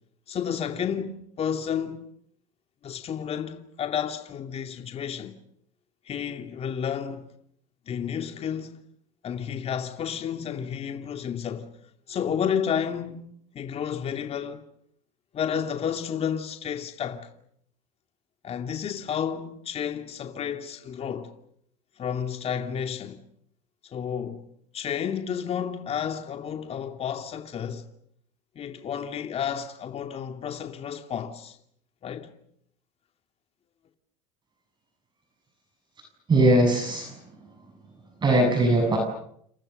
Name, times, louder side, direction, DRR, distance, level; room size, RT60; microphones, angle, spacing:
voice 1, 0.3-2.1 2.8-5.3 6.1-7.3 7.9-8.8 9.2-11.8 12.1-14.6 15.3-17.3 18.4-21.3 22.0-23.2 23.9-24.4 24.7-27.8 28.5-31.6 32.0-32.3, left 8 dB, 35° left, 2.7 m, -31 dB
voice 2, 36.3-37.4 38.2-39.0, right 1 dB, 25° right, 7.2 m, -21 dB
29.0 x 28.5 x 6.8 m
supercardioid pair, 125°, 18 cm